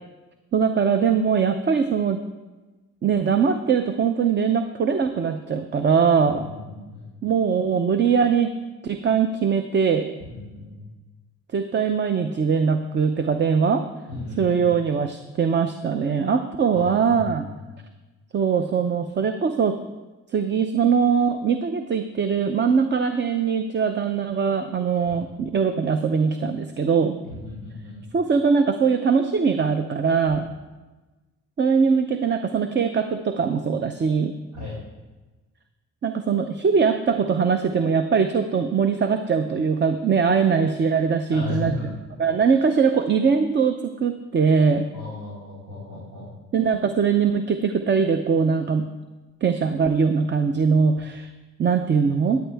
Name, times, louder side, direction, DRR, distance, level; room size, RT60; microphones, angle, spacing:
voice 1, 0.5-2.2 3.0-6.5 7.2-8.5 8.8-10.1 11.5-13.9 14.4-17.5 18.3-19.8 20.3-27.2 28.1-30.5 31.6-34.3 36.0-41.7 42.2-44.9 46.5-48.9 49.4-51.3 51.6-52.4, right 6 dB, 35° right, 9 dB, 0.6 m, -21 dB
voice 2, 6.4-7.1 10.3-10.8 14.1-14.7 16.7-17.3 25.1-25.2 27.2-28.0 34.5-34.7 41.3-41.9 44.9-46.3, left 3 dB, 85° right, -8 dB, 3.9 m, -35 dB
13.0 x 9.2 x 3.5 m, 1.2 s
cardioid pair, 90°, 30 cm